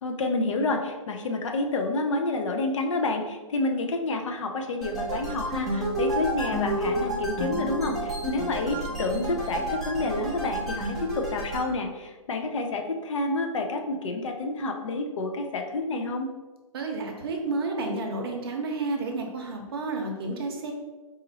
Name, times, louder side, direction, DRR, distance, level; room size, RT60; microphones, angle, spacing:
voice 1, 0.0-16.3, left 2 dB, 60° left, 3 dB, 0.6 m, -29 dB
sound 1, 4.8-11.7, equal, ahead, 0.4 m, -30 dB
voice 2, 16.7-20.7, right 3 dB, 40° right, 2 dB, 0.7 m, -31 dB
4.2 x 2.5 x 3.9 m, 1.2 s
hypercardioid pair, 155°, 18 cm